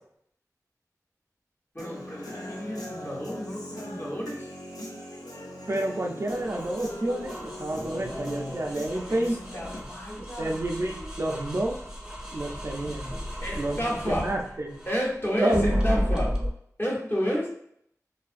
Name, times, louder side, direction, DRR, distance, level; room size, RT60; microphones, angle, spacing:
voice 1, 1.7-4.5 7.7-8.6 9.1-10.9 13.4-14.3 14.9-16.3 16.8-17.5, equal, 35° left, -4 dB, 0.9 m, -31 dB
Human voice / Guitar, 1.8-9.8, left 1 dB, 80° left, 0.6 m, -40 dB
voice 2, 5.7-9.3 10.2-11.8 12.3-13.2 13.6-14.8 15.4-15.7, right 1 dB, 45° right, 1 dB, 0.3 m, -29 dB
sound 1, 6.3-15.1 15.5-16.5, equal, 10° right, 0.6 m, -33 dB
2.5 x 2.4 x 2.4 m, 0.69 s
wide cardioid pair, 60°, 6 cm